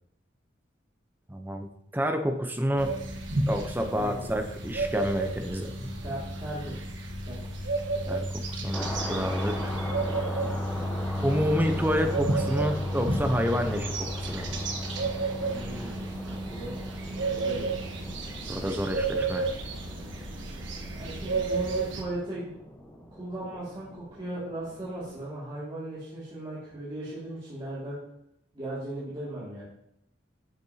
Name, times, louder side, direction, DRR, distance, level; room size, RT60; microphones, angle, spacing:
voice 1, 1.3-3.0 3.5-6.0 8.1-9.7 11.2-14.5 18.5-19.5, equal, 10° right, 5 dB, 0.7 m, -29 dB
sound 1, 2.8-22.0, right 2 dB, 75° right, 1.3 m, -31 dB
voice 2, 4.0-4.3 6.0-6.9 7.3-7.7 15.4-16.8 17.3-17.8 20.9-22.5 23.1-28.0 28.5-29.6, right 1 dB, 25° right, -10 dB, 2.3 m, -37 dB
sound 2, 8.7-25.2, equal, 10° left, 1.0 m, -41 dB
10.5 x 6.8 x 2.8 m, 0.74 s
head